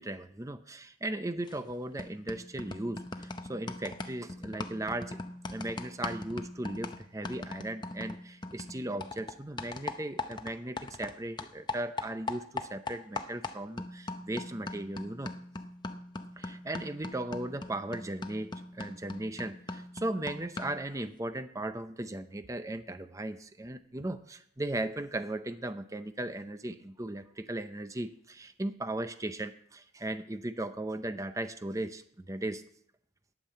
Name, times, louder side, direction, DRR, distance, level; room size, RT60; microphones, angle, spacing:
voice 1, 0.0-5.2 5.5-15.3 16.4-32.0 32.3-32.6, right 1 dB, 15° right, 10 dB, 0.5 m, -37 dB
sound 1, 1.5-1.7 2.0-11.1 11.4-20.9, left 3 dB, 20° left, 0.7 m, -40 dB
10.0 x 8.9 x 7.6 m, 0.67 s
head